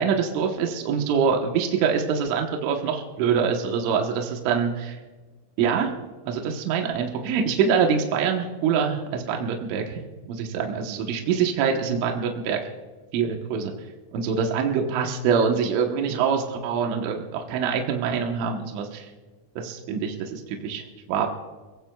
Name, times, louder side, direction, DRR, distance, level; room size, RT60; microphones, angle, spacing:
voice 1, 0.0-4.9 5.6-5.9 6.3-10.0 10.3-12.6 13.1-13.7 14.1-19.1 19.6-20.8 21.1-21.3, right 6 dB, 80° right, 2 dB, 3.6 m, -24 dB
29.5 x 17.5 x 2.3 m, 1.3 s
omnidirectional pair, 5.6 m